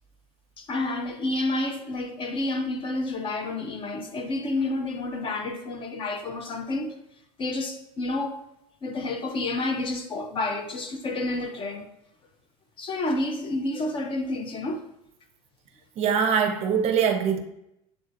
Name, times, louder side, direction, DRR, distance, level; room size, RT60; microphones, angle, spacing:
voice 1, 0.6-6.9 7.4-8.4 8.8-11.9 12.8-14.8, left 2 dB, 30° left, 0.5 m, -29 dB
voice 2, 16.0-17.4, right 7 dB, 40° right, 0.5 m, -23 dB
7.0 x 3.1 x 2.5 m
supercardioid pair, 135°, 18 cm